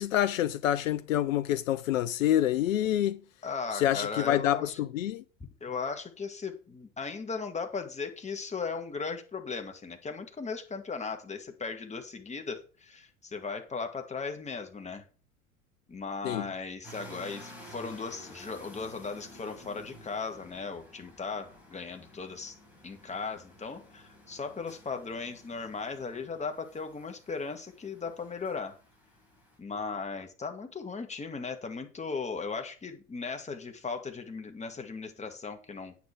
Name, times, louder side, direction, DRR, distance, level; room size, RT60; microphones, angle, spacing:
voice 1, 0.0-3.2 3.7-5.2 16.2-16.5, left 12 dB, 70° left, 0.7 m, -27 dB
voice 2, 3.4-4.8 5.6-15.0 15.9-22.6 22.8-28.8 29.6-36.0, left 4 dB, 15° left, 1.9 m, -37 dB
sound 1, 16.8-29.6, left 1 dB, 5° right, 5.2 m, -52 dB
9.2 x 6.9 x 4.5 m
figure-of-eight pair, 75°, 41 cm